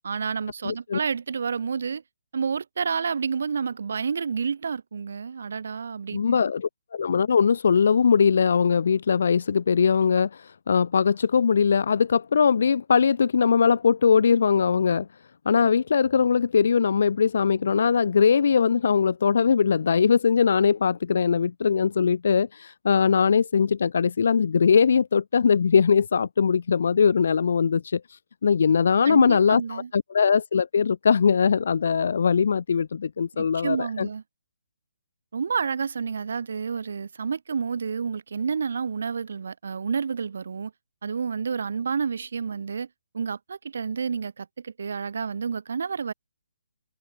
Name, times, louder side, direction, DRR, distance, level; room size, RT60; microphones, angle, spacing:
voice 1, 0.0-2.0 2.3-6.4 29.0-29.9 33.4-34.2 35.3-40.7 41.0-42.9 43.1-46.1, right 6 dB, 65° right, 0.6 m, -29 dB
voice 2, 0.6-1.0 6.1-15.1 15.5-34.1, left 6 dB, 60° left, 0.4 m, -21 dB
hypercardioid pair, 160°, 0 cm